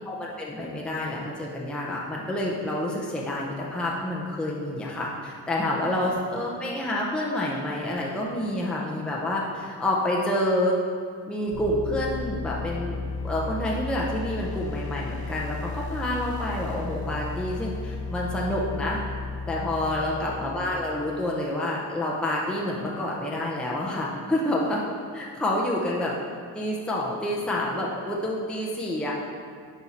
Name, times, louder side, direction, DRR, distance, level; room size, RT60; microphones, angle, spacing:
voice 1, 0.1-10.7 11.3-13.0 13.2-19.0 19.5-24.8 25.1-26.1 26.5-29.1, left 1 dB, ahead, -4 dB, 0.6 m, -28 dB
sound 1, 11.5-21.3, left 3 dB, 45° left, 0.8 m, -34 dB
9.6 x 4.7 x 4.2 m, 2.1 s
cardioid pair, 170°, 40 cm